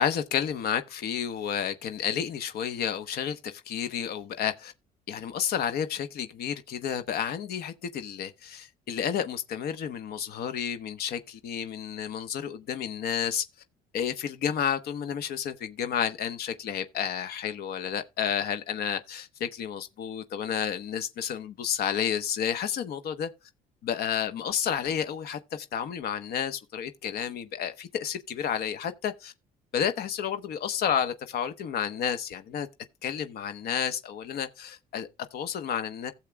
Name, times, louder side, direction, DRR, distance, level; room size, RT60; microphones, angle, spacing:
voice 1, 0.0-4.7 5.1-13.4 13.9-23.3 23.8-29.3 29.7-32.7 33.0-36.1, left 8 dB, 65° left, 1.1 m, -31 dB
15.5 x 7.3 x 2.2 m
cardioid pair, 110°, 17 cm